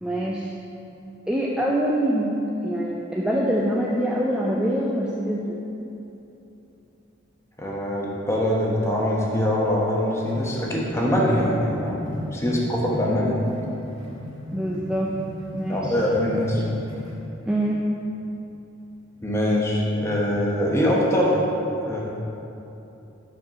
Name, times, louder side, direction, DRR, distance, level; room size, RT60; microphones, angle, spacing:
voice 1, 0.0-0.5 1.3-2.3 2.6-5.6 12.3-12.4 14.5-15.2 15.5-16.0 17.5-17.8, right 1 dB, 5° right, -4 dB, 0.3 m, -24 dB
voice 2, 7.6-12.0 12.3-13.4 15.7-16.6 19.2-21.4 21.8-22.0, left 1 dB, 15° left, -4 dB, 0.9 m, -23 dB
sound 1, 9.7-17.3, equal, 20° right, 1.5 m, -36 dB
4.9 x 4.6 x 5.6 m, 2.9 s
head